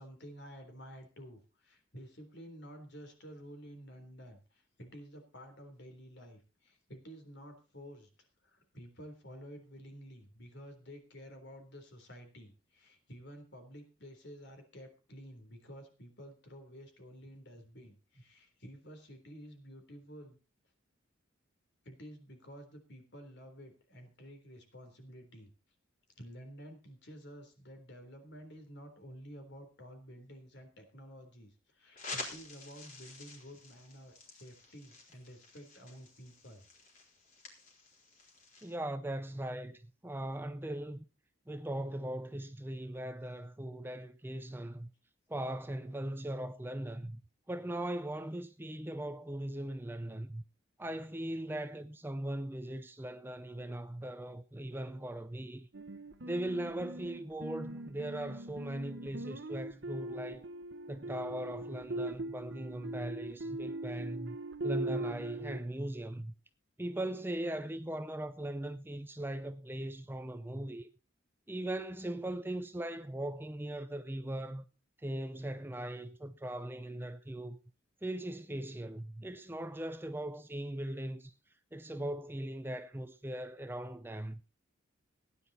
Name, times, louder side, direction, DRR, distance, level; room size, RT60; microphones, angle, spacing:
voice 1, 0.0-8.1 8.4-20.4 21.8-25.5 26.2-36.7 38.2-38.4, equal, 60° left, 3.7 m, -51 dB
sound 1, 32.0-38.8, left 3 dB, 40° left, 4.0 m, -48 dB
voice 2, 38.6-41.0 41.5-44.9 45.3-47.2 47.5-50.4 50.8-55.7 56.2-60.5 60.9-64.4 64.6-66.3 66.8-70.9 71.5-74.7 75.0-77.6 78.0-81.3 81.7-84.4, right 1 dB, 10° right, 0.6 m, -39 dB
sound 2, 55.7-65.6, right 2 dB, 60° right, 1.1 m, -41 dB
16.5 x 10.0 x 4.2 m
head